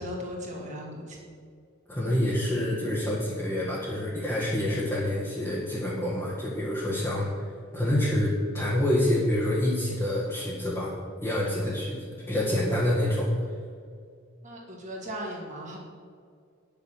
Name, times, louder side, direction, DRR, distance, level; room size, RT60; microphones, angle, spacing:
voice 1, 0.0-1.4 14.4-15.8, equal, 35° right, -2 dB, 2.3 m, -37 dB
voice 2, 1.9-7.5 7.7-10.9 11.2-13.3, left 1 dB, 15° left, -8 dB, 1.8 m, -27 dB
9.8 x 7.2 x 6.7 m, 2.2 s
head